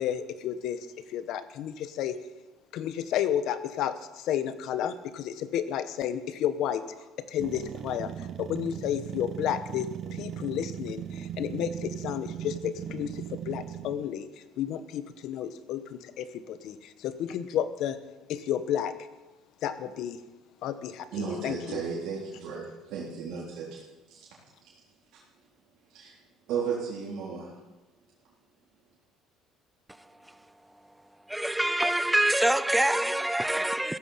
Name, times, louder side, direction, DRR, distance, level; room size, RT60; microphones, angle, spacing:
voice 1, 0.0-2.2 2.7-6.8 7.3-14.3 14.6-18.0 18.3-18.9 19.6-20.2 20.6-21.8, left 10 dB, 65° left, 1.2 m, -32 dB
sound 1, 7.4-14.2, right 10 dB, 45° right, 0.6 m, -38 dB
voice 2, 21.1-23.8 24.1-24.2 25.9-26.1 26.5-27.5, right 5 dB, 70° right, 3.8 m, -34 dB
voice 3, 31.3-34.0, right 1 dB, 5° right, 0.6 m, -25 dB
16.0 x 14.5 x 5.8 m
cardioid pair, 130°, 0 cm